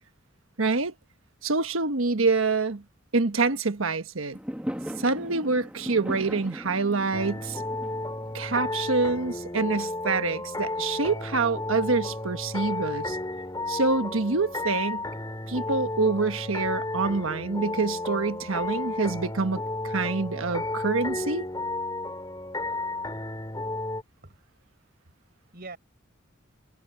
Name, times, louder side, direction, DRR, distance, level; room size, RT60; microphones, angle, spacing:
voice 1, 0.6-0.9 1.4-2.8 3.1-4.4 5.0-7.6 8.3-13.2 13.7-15.0 15.5-21.5, right 3 dB, 75° right, 1.3 m, -26 dB
Fireworks, 4.3-9.5, equal, 5° right, 1.6 m, -38 dB
sound 1, 7.1-24.0, left 2 dB, 20° left, 4.3 m, -33 dB
voice 2, 24.2-25.8, right 3 dB, 50° right, 4.6 m, -47 dB
head